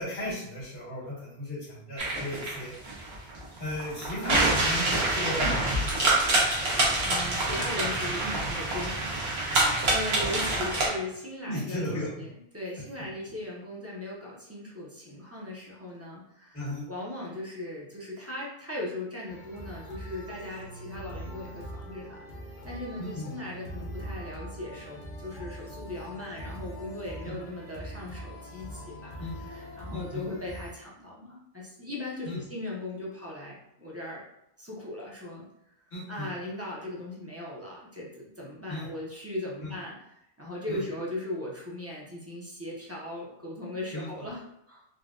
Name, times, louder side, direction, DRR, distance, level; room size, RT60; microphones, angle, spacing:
voice 1, 0.0-2.7 3.6-5.8 11.5-12.1 16.5-16.9 23.0-23.3 27.3-27.4 29.2-29.4 29.9-30.2 32.3-32.4 35.9-36.3 38.7-38.9 39.6-39.7 40.7-40.8 43.9-44.1, left 1 dB, 80° left, -8 dB, 1.7 m, -35 dB
sound 1, 2.0-10.9, right 2 dB, 80° right, 1.0 m, -26 dB
voice 2, 7.0-11.9 12.2-22.2 22.6-34.2 34.6-35.4 36.1-44.8, left 1 dB, 20° right, -5 dB, 0.5 m, -38 dB
sound 2, 19.3-30.7, equal, 45° left, 0.9 m, -42 dB
3.8 x 2.1 x 2.4 m, 0.78 s
omnidirectional pair, 1.0 m